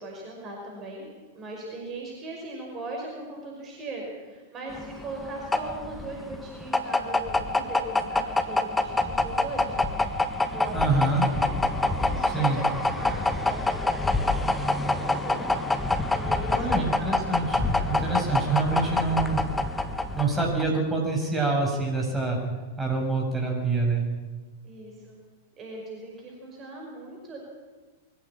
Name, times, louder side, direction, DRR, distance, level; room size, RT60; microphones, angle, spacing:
voice 1, 0.0-10.0 10.5-10.8 11.1-11.5 11.7-15.5 16.1-16.8 18.1-19.2 24.6-25.2 25.6-27.4, right 2 dB, 25° right, -1 dB, 5.5 m, -39 dB
sound 1, 4.7-20.8, left 2 dB, 10° left, 1.6 m, -26 dB
voice 2, 10.7-11.2 12.2-12.6 16.5-19.4 20.1-22.4 22.8-24.0, right 3 dB, 10° right, 0 dB, 6.5 m, -26 dB
22.5 x 16.0 x 8.7 m, 1.3 s
figure-of-eight pair, 95°, 0 cm